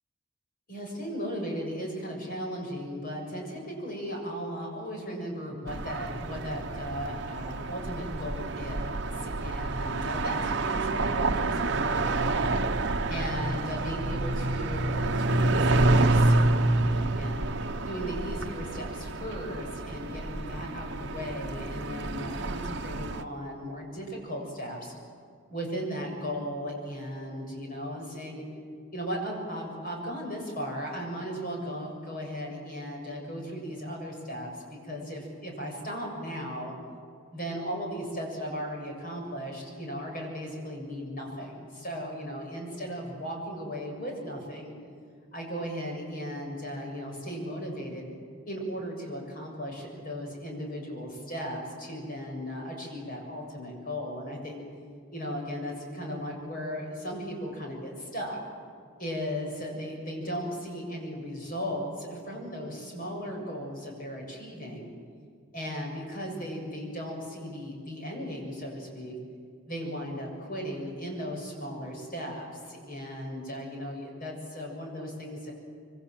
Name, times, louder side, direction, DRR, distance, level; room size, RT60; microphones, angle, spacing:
voice 1, 0.7-12.4 12.8-17.4 17.9-24.9 25.5-28.4 28.9-36.8 37.3-44.7 45.3-48.1 48.5-54.6 55.1-58.4 59.0-64.9 65.5-69.1 69.7-75.5, equal, 40° left, 0 dB, 7.2 m, -36 dB
sound 1, 5.7-23.2, right 2 dB, 55° right, 1.0 m, -28 dB
26.0 x 24.0 x 7.6 m, 2.2 s
head